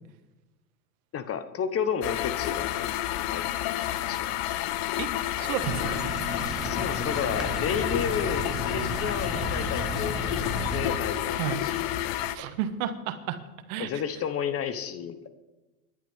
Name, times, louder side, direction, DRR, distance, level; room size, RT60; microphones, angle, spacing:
voice 1, 1.1-3.6 4.1-4.4 5.4-5.6 6.6-11.8 12.0-12.5 13.8-15.3, left 7 dB, 30° left, 11 dB, 1.1 m, -32 dB
sound 1, 2.0-12.4, left 13 dB, 55° left, 1.0 m, -30 dB
voice 2, 5.4-5.9 11.4-11.6 12.3-13.4 13.7-13.9, right 10 dB, 60° right, 10 dB, 1.5 m, -31 dB
sound 2, 5.6-10.9, equal, ahead, 2.0 m, -34 dB
25.5 x 11.0 x 3.7 m, 1.1 s
hypercardioid pair, 105°, 45 cm